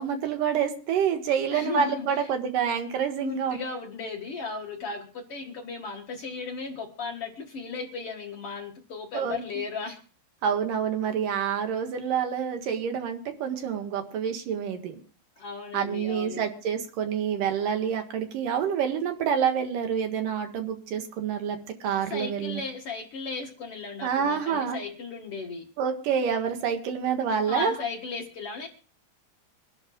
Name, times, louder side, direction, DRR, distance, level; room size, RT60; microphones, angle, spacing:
voice 1, 0.0-3.6 9.1-9.4 10.4-15.0 15.7-22.6 24.0-24.8 25.8-27.7, right 7 dB, 60° right, 5 dB, 2.8 m, -27 dB
voice 2, 1.5-2.3 3.2-10.0 15.4-16.5 22.0-25.6 27.4-28.7, left 4 dB, 65° left, 2 dB, 1.4 m, -36 dB
25.5 x 12.5 x 2.3 m, 0.40 s
omnidirectional pair, 5.1 m